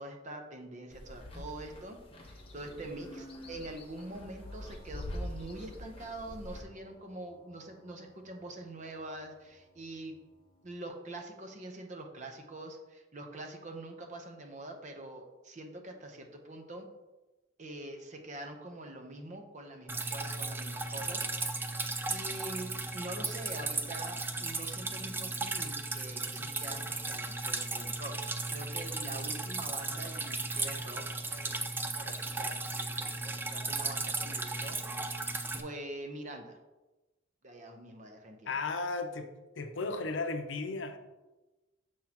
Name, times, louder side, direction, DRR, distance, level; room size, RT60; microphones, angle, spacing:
voice 1, 0.0-10.1 10.6-16.9 17.6-21.8 22.1-31.6 31.9-36.6 37.4-38.6, right 1 dB, 40° right, 4 dB, 0.8 m, -45 dB
sound 1, 0.9-6.6, left 1 dB, 30° left, 1.0 m, -44 dB
Piano, 4.4-10.9, left 1 dB, 5° left, 2.0 m, -62 dB
Drip, 19.9-35.6, right 3 dB, 10° right, 0.3 m, -36 dB
voice 2, 38.5-39.3 39.6-41.0, left 3 dB, 70° left, 7 dB, 0.6 m, -34 dB
6.3 x 6.0 x 2.9 m, 1.1 s
head